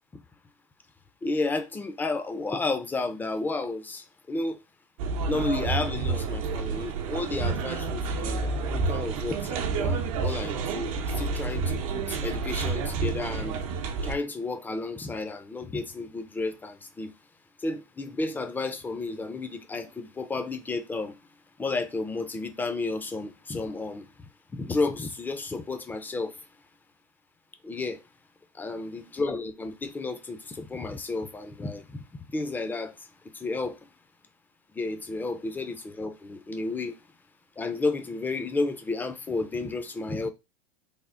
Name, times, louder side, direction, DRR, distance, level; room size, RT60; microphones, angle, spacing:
voice 1, 1.2-4.6 5.3-13.6 14.0-17.1 17.6-21.2 21.6-24.1 24.5-26.4 27.6-28.0 28.6-32.0 32.3-32.9 33.3-33.8 34.8-37.0 37.6-40.3, left 3 dB, 10° left, 0.4 m, -32 dB
sound 1, 5.0-14.1, right 4 dB, 75° right, 0.8 m, -29 dB
3.5 x 2.1 x 3.6 m
supercardioid pair, 120°, 18 cm